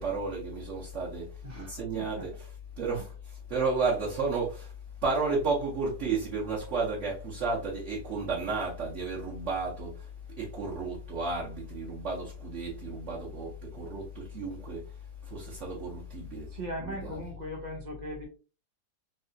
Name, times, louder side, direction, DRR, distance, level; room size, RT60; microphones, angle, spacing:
voice 1, 0.0-1.3 1.6-4.7 5.0-10.1 10.4-14.8 15.2-16.5 16.8-17.2, right 3 dB, 55° right, 1.0 m, -32 dB
voice 2, 1.4-2.3 16.5-18.3, equal, 85° right, 0.4 m, -39 dB
3.2 x 2.7 x 2.5 m
omnidirectional pair, 1.7 m